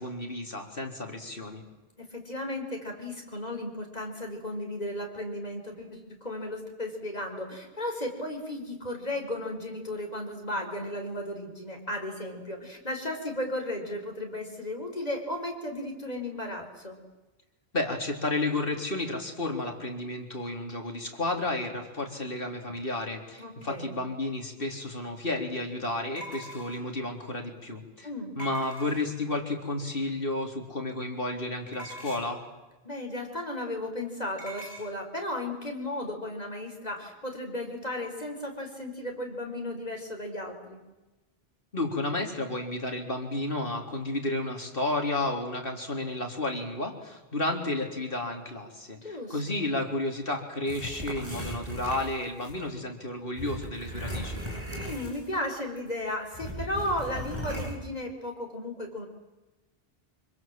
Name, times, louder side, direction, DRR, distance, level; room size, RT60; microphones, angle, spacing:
voice 1, 0.0-1.6 17.7-28.1 28.4-32.4 41.7-54.4, left 2 dB, 60° left, 2 dB, 4.1 m, -32 dB
voice 2, 2.0-17.0 23.4-23.9 28.0-28.4 32.8-40.8 49.0-49.7 54.8-59.1, left 1 dB, 40° left, 3 dB, 5.2 m, -35 dB
sound 1, 24.6-24.7 26.2-27.0 28.4-29.3 31.7-32.4 34.4-34.9, equal, 75° left, 5.5 m, -43 dB
Two brics being grinding together, 50.7-52.6 53.4-55.5 55.8-55.9 56.3-57.8, equal, 25° right, 6.8 m, -37 dB
26.0 x 25.0 x 7.7 m, 1.1 s
omnidirectional pair, 1.1 m